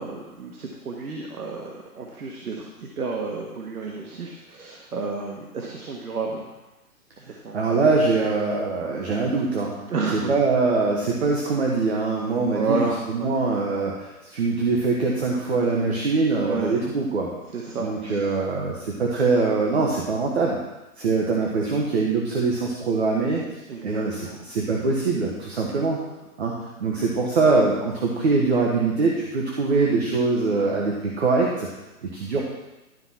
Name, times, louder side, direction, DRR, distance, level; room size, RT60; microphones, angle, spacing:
voice 1, 0.0-6.6 7.2-7.6 9.9-10.3 12.5-13.3 16.4-16.7 17.5-18.3 23.7-24.4, right 4 dB, 85° right, 0 dB, 1.6 m, -31 dB
voice 2, 7.5-9.7 10.1-12.8 13.1-17.3 17.8-20.6 21.0-23.4 23.8-24.2 24.5-26.0 26.4-26.5 26.8-31.7 32.0-32.4, right 3 dB, 45° right, -1 dB, 1.4 m, -23 dB
12.0 x 4.6 x 5.8 m, 1.0 s
hypercardioid pair, 175°, 44 cm